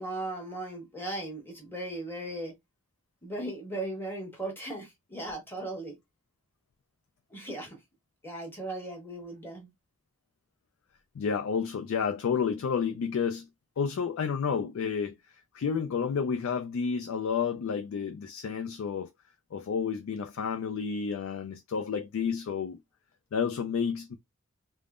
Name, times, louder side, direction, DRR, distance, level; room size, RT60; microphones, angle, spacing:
voice 1, 0.0-2.5 3.2-5.9 7.3-7.8 8.2-9.7, right 1 dB, 10° left, 1.2 m, -37 dB
voice 2, 11.2-13.5 13.8-15.1 15.5-19.1 19.5-22.8 23.3-24.2, left 6 dB, 75° left, 0.4 m, -30 dB
3.5 x 2.0 x 2.4 m
head